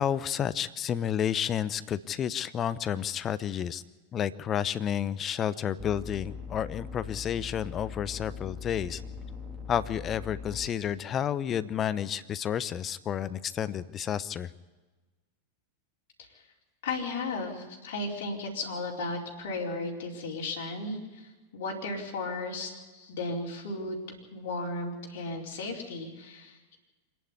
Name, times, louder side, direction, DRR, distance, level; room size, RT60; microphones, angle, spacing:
voice 1, 0.0-3.8 4.1-9.0 9.7-14.5, left 9 dB, 30° left, 16 dB, 0.8 m, -31 dB
sound 1, 5.8-10.7, left 5 dB, 10° right, 3.4 m, -41 dB
voice 2, 16.8-24.0 24.3-26.8, left 2 dB, 60° left, -2 dB, 4.5 m, -35 dB
25.5 x 11.0 x 9.9 m, 1.2 s
figure-of-eight pair, 90°, 0 cm